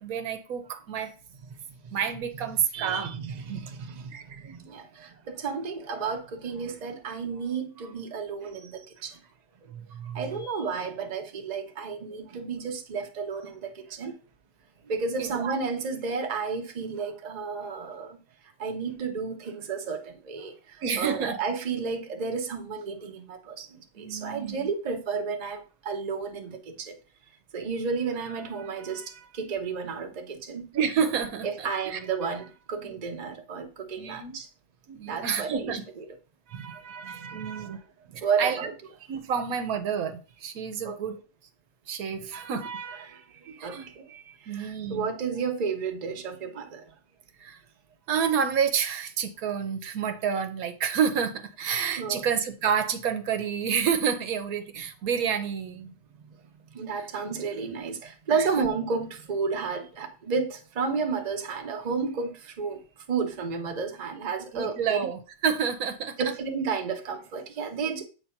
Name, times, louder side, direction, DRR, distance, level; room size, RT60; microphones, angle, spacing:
voice 1, 0.0-1.1 1.9-3.6 4.1-4.7 9.7-10.2 15.2-15.5 20.8-21.4 24.0-24.7 30.7-32.0 32.8-33.0 34.0-34.4 34.9-35.8 36.5-36.7 37.0-37.8 38.1-38.6 39.1-41.2 41.9-42.7 43.5-43.9 44.5-45.1 47.4-47.6 48.1-55.9 58.3-58.7 64.5-66.2, right 7 dB, 85° right, 1.2 m, -29 dB
voice 2, 2.7-9.2 10.1-14.1 14.9-18.2 18.6-20.5 21.0-26.9 27.5-30.6 31.4-34.5 35.1-36.0 36.5-37.8 38.2-38.7 40.8-41.0 42.3-46.8 52.0-52.2 55.9-56.0 56.7-62.8 63.1-65.0 66.2-68.0, right 5 dB, 35° right, 0.8 m, -32 dB
7.7 x 2.7 x 5.7 m
omnidirectional pair, 1.5 m